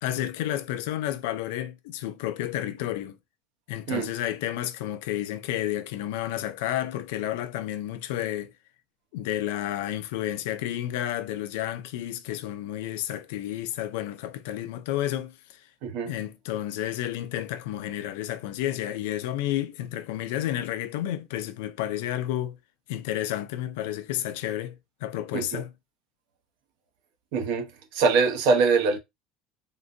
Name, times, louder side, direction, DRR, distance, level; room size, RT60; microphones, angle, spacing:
voice 1, 0.0-3.2 3.7-8.5 9.1-15.7 16.1-22.6 22.9-24.7 25.0-25.7, left 13 dB, 80° left, 0.4 m, -31 dB
voice 2, 27.3-27.7 27.9-29.0, right 4 dB, 65° right, 0.8 m, -23 dB
3.7 x 2.2 x 2.6 m
cardioid pair, 165°, 0 cm